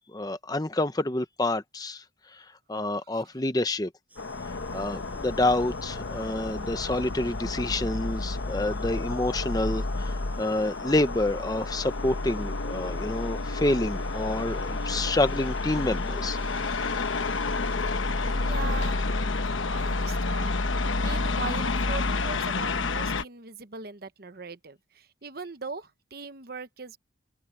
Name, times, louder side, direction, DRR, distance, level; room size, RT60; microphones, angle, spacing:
voice 1, 0.0-2.0 2.3-2.4 2.7-3.9 4.7-16.4 16.7-16.8, left 2 dB, 20° left, 0.9 m, -28 dB
sound 1, 4.1-17.8, right 2 dB, 10° right, 6.0 m, -57 dB
sound 2, 4.2-23.2, left 3 dB, 85° left, 1.1 m, -30 dB
voice 2, 18.2-19.0 19.7-20.6 21.0-27.0, right 4 dB, 50° right, 1.0 m, -40 dB
head